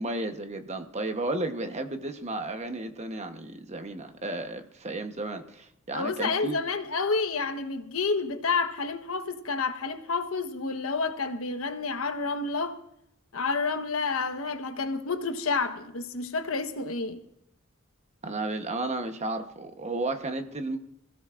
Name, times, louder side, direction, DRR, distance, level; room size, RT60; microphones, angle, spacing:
voice 1, 0.0-6.6 18.2-20.8, right 2 dB, 35° right, 1.0 m, -33 dB
voice 2, 5.9-12.8 13.3-17.2, left 4 dB, 85° left, 1.2 m, -29 dB
25.5 x 15.5 x 2.5 m
head